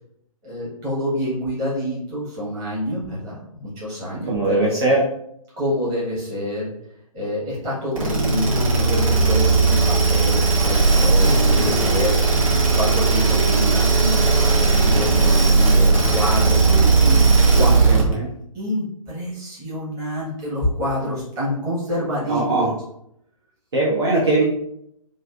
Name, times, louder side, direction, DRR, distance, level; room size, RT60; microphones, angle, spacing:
voice 1, 0.4-4.7 5.6-6.7 7.1-12.4 12.7-18.1 18.5-22.7, left 1 dB, 15° right, -8 dB, 1.2 m, -27 dB
voice 2, 4.3-5.0 17.9-18.3 22.3-22.7 23.7-24.4, right 2 dB, 45° right, -5 dB, 0.7 m, -20 dB
sound 1, 8.0-18.1, right 4 dB, 65° right, 1.2 m, -17 dB
3.1 x 2.5 x 2.4 m, 0.74 s
figure-of-eight pair, 130°, 19 cm